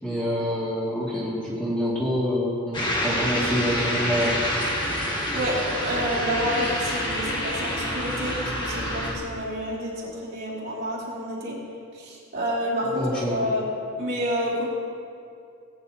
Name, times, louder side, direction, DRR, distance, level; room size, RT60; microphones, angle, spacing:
voice 1, 0.0-4.5 12.9-13.4, equal, 5° left, -8 dB, 2.3 m, -26 dB
sound 1, 2.7-9.1, equal, 20° left, 1.4 m, -27 dB
voice 2, 5.3-11.6 11.9-13.6 14.0-14.7, equal, 50° right, -6 dB, 2.6 m, -29 dB
18.5 x 9.4 x 2.9 m, 2.4 s
head